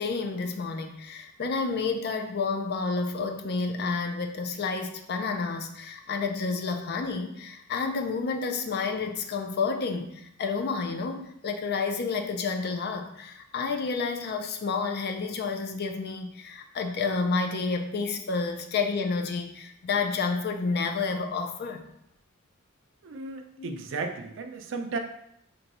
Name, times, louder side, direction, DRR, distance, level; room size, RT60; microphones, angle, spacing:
voice 1, 0.0-10.1 10.4-21.8 23.6-23.8, left 4 dB, 50° left, 5 dB, 0.4 m, -30 dB
voice 2, 23.0-25.0, right 4 dB, 65° right, 5 dB, 0.5 m, -34 dB
3.8 x 2.3 x 4.1 m, 0.75 s
head